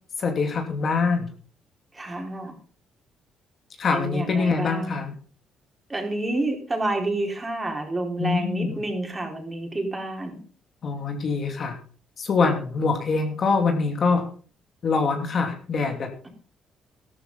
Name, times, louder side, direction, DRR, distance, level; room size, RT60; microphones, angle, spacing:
voice 1, 0.2-1.3 3.8-5.1 8.2-8.8 10.8-11.8 12.2-14.3 14.8-16.3, left 4 dB, 50° left, 4 dB, 2.6 m, -24 dB
voice 2, 1.9-2.5 3.9-5.0 5.9-10.4, right 2 dB, 20° right, 2 dB, 4.3 m, -29 dB
13.0 x 12.5 x 4.0 m, 0.41 s
cardioid pair, 90°, 0 cm